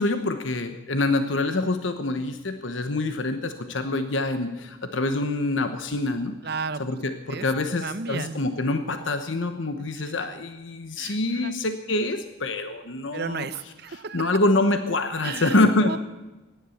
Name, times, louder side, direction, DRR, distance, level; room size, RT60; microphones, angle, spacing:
voice 1, 0.0-6.4 6.8-13.4 13.9-16.0, left 2 dB, 70° left, 8 dB, 1.1 m, -26 dB
voice 2, 6.4-7.0 7.3-7.5 7.8-8.4 11.0-11.5 13.1-14.3 15.2-16.0, right 5 dB, 55° right, 14 dB, 0.8 m, -33 dB
18.0 x 11.0 x 7.2 m, 1.1 s
head